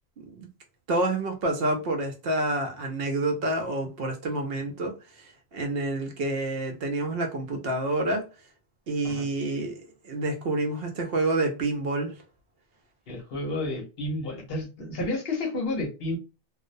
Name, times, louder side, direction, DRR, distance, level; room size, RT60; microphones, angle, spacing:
voice 1, 0.9-4.9 5.5-8.2 8.9-12.1, right 2 dB, 70° right, 0.8 m, -28 dB
voice 2, 13.1-16.2, left 2 dB, 65° left, 1.0 m, -31 dB
2.4 x 2.1 x 2.5 m
omnidirectional pair, 1.1 m